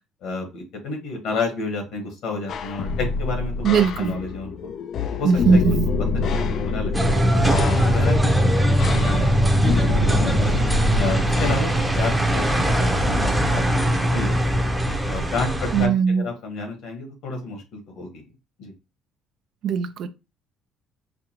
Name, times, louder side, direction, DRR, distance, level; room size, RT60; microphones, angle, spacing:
voice 1, 0.2-4.7 5.1-5.6 6.3-7.0 7.5-9.3 9.7-10.5 11.0-13.8 14.1-14.6 15.1-18.2 18.6-18.7, left 3 dB, 75° left, 1.4 m, -31 dB
sound 1, 2.5-11.6, left 4 dB, 55° left, 0.4 m, -27 dB
voice 2, 3.6-4.2 5.2-5.9 15.7-16.3 19.6-20.1, right 6 dB, 60° right, 0.4 m, -19 dB
sound 2, 6.9-15.9, right 1 dB, 5° right, 0.7 m, -20 dB
5.0 x 2.3 x 2.9 m
cardioid pair, 105°, 0 cm